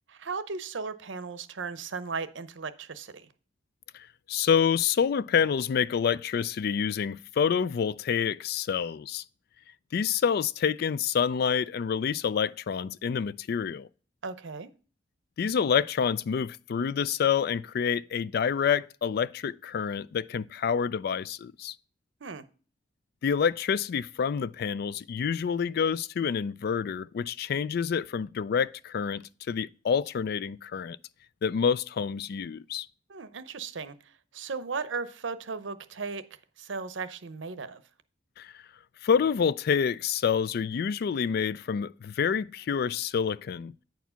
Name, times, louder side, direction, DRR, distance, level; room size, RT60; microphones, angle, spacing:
voice 1, 0.1-3.3 14.2-14.7 22.2-22.4 33.1-33.9 34.3-36.2 36.6-37.8, right 4 dB, 80° right, 0.7 m, -36 dB
voice 2, 3.9-9.2 9.9-13.9 15.4-21.7 23.2-31.0 31.4-32.9 38.4-38.5 39.0-43.7, left 7 dB, 55° left, 0.3 m, -27 dB
9.1 x 4.6 x 5.6 m
head